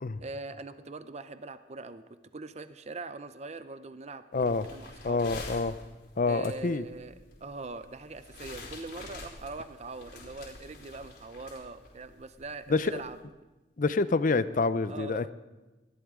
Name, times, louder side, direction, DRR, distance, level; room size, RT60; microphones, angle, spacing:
voice 1, 0.2-2.0 2.3-5.3 6.3-13.2 14.9-15.3, right 3 dB, 40° right, 12 dB, 0.6 m, -42 dB
sound 1, 4.3-13.2, left 2 dB, 75° left, 3.5 m, -48 dB
voice 2, 4.3-4.7 5.0-5.7 6.2-6.8 12.7-13.0 13.8-15.3, left 3 dB, 50° left, 14 dB, 0.6 m, -27 dB
20.0 x 14.0 x 3.7 m, 1.1 s
head